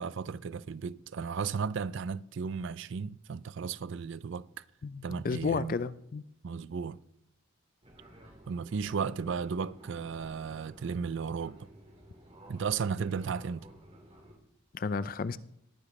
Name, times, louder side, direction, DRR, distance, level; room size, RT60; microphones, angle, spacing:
voice 1, 0.0-4.5 5.0-5.7 6.4-7.0 8.5-11.7 12.5-13.7, right 6 dB, 55° right, 0.4 m, -34 dB
voice 2, 4.8-6.2 14.7-15.4, left 4 dB, 40° left, 0.3 m, -32 dB
Fixed-wing aircraft airplane, 7.8-14.4, equal, 25° right, 2.1 m, -53 dB
19.0 x 10.0 x 3.2 m
head